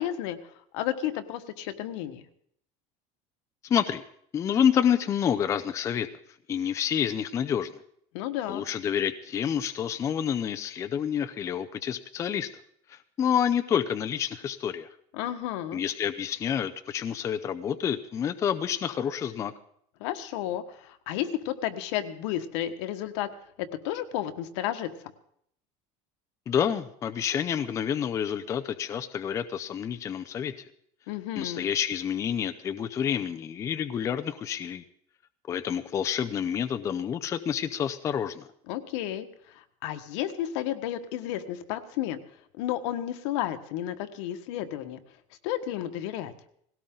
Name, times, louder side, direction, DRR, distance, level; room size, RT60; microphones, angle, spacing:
voice 1, 0.0-2.2 8.1-8.6 15.1-15.8 20.0-23.3 23.6-24.9 31.1-31.6 38.7-39.3 39.5-42.2 42.6-45.0 45.4-46.3, left 12 dB, 75° left, 8 dB, 1.5 m, -32 dB
voice 2, 3.6-4.0 4.3-6.1 6.5-7.7 8.5-12.5 12.9-14.9 15.7-19.5 26.5-30.5 31.4-34.8 35.5-38.5, left 8 dB, 20° left, 9 dB, 0.5 m, -28 dB
19.0 x 17.0 x 3.9 m, 0.67 s
cardioid pair, 180°, 15 cm